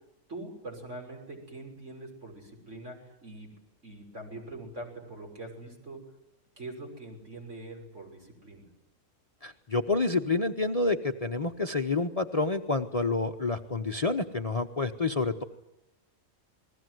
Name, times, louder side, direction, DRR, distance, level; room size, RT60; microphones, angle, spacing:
voice 1, 0.3-3.5 3.8-6.0 6.6-8.7, right 2 dB, 60° right, 1 dB, 6.6 m, -43 dB
voice 2, 9.4-15.4, left 3 dB, 30° left, 7 dB, 0.9 m, -28 dB
28.5 x 21.0 x 7.9 m, 0.93 s
omnidirectional pair, 1.4 m